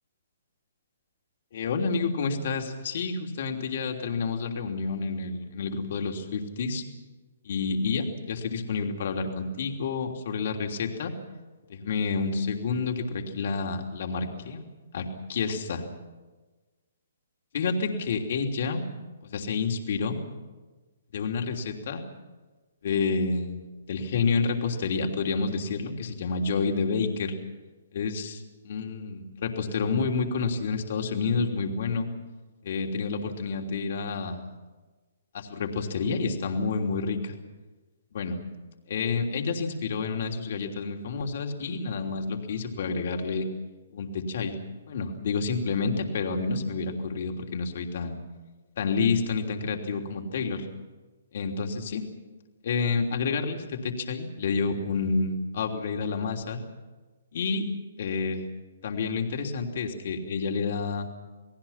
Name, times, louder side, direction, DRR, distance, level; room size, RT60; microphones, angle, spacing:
voice 1, 1.5-6.8 7.4-11.1 11.7-14.6 14.9-15.8 17.5-18.8 19.3-20.2 21.1-22.0 22.8-27.3 27.9-32.1 32.6-34.4 35.3-37.3 38.1-38.4 38.9-43.5 43.9-44.5 44.9-48.2 48.8-50.7 51.3-52.0 52.6-56.6 57.3-57.7 58.0-58.4 58.8-61.1, left 4 dB, 60° left, 3 dB, 3.2 m, -29 dB
29.5 x 19.0 x 5.8 m, 1.3 s
hypercardioid pair, 140°, 0 cm